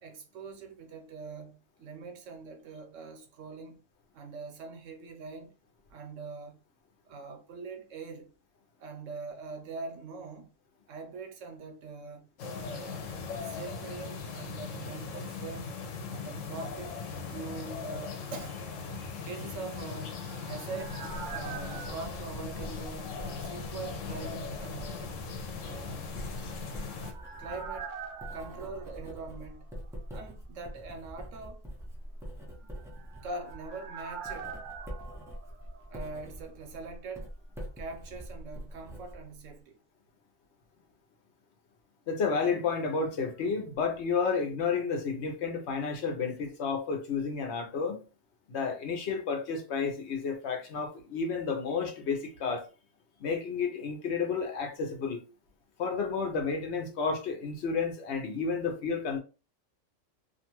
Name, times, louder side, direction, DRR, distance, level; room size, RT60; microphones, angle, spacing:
voice 1, 0.0-3.8 4.1-5.5 5.9-6.6 7.1-8.3 8.8-10.5 10.9-12.3 12.6-13.1 13.4-15.7 16.1-17.0 17.3-18.6 19.2-21.0 21.3-23.1 23.4-25.1 25.6-26.1 27.4-27.9 28.3-29.7 30.1-31.6 32.6-32.7 33.2-34.5 35.9-37.3 37.8-39.8, right 4 dB, 85° right, 1.0 m, -43 dB
sound 1, 12.4-27.1, left 5 dB, 90° left, 1.0 m, -39 dB
sound 2, 19.8-23.5 23.8-23.9 26.3-30.0 30.3-30.4 32.6-36.5 36.7-36.8, right 6 dB, 50° right, 0.6 m, -45 dB
Writing, 20.9-39.6, equal, 5° right, 0.3 m, -45 dB
voice 2, 42.1-48.0 48.5-52.7 53.2-55.2 55.8-59.2, left 5 dB, 70° left, 0.9 m, -31 dB
2.5 x 2.3 x 2.9 m
omnidirectional pair, 1.3 m